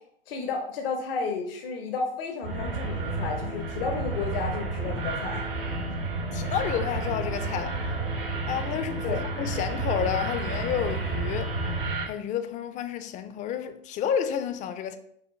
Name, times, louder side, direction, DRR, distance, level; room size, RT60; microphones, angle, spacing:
voice 1, 0.3-5.4 9.0-9.2, left 4 dB, 70° left, 0.7 m, -32 dB
sound 1, 2.4-12.0, right 3 dB, 80° right, 1.3 m, -31 dB
voice 2, 6.3-7.8 8.5-11.6 12.1-15.0, left 9 dB, 25° left, 0.4 m, -30 dB
5.4 x 2.2 x 3.2 m
hypercardioid pair, 100°, 29 cm